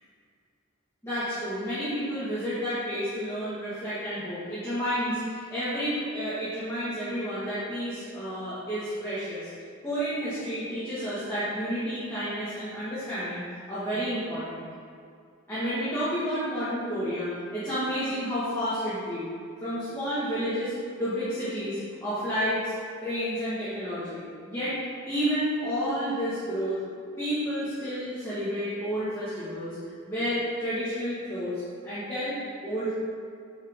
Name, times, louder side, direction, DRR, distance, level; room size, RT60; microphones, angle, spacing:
voice 1, 1.0-9.5 9.8-14.6 15.5-19.3 19.6-20.7 21.0-22.7 23.0-24.8 25.1-26.8 27.2-29.8 30.0-32.4 32.6-32.9, equal, 10° left, -13 dB, 1.8 m, -30 dB
9.1 x 5.7 x 3.7 m, 2.3 s
head